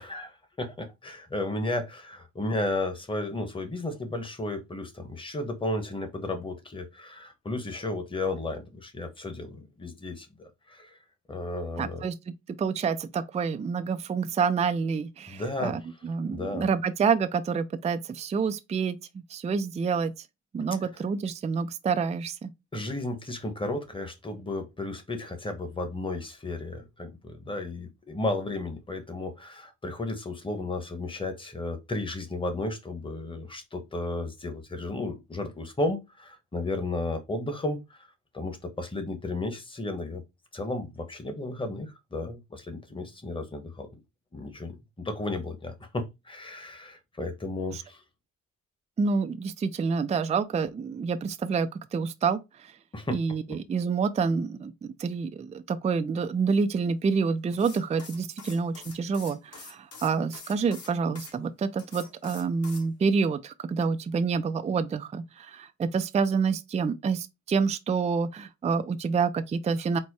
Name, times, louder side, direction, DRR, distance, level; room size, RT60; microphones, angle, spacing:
voice 1, 0.0-11.0 11.3-12.1 15.3-15.7 16.3-16.7 22.7-38.1 38.3-40.2 40.5-43.9 44.3-48.0 52.9-53.2, left 2 dB, 15° left, 1.1 m, -33 dB
voice 2, 11.8-12.1 12.6-20.1 20.5-22.5 47.7-47.8 49.0-52.7 53.1-54.7 55.0-70.0, right 5 dB, 25° right, 0.4 m, -28 dB
sound 1, 57.5-61.3 61.8-62.9, left 4 dB, 55° left, 1.8 m, -46 dB
4.2 x 2.2 x 4.6 m
cardioid pair, 90°, 30 cm